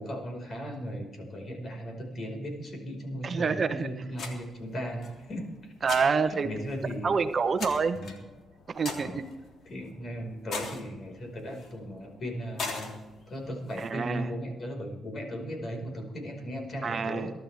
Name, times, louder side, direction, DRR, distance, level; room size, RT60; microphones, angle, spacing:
voice 1, 0.0-7.2 7.9-8.2 9.0-9.2 9.6-13.0 13.3-17.3, equal, 45° left, 2 dB, 5.1 m, -37 dB
voice 2, 3.2-3.9 5.8-6.5 7.0-8.0 8.7-9.2 13.8-14.3 16.8-17.3, right 5 dB, 40° right, 9 dB, 1.0 m, -27 dB
sound 1, 4.1-13.9, left 4 dB, 60° left, 3.1 m, -42 dB
23.0 x 12.0 x 3.5 m, 1.2 s
cardioid pair, 90°, 0 cm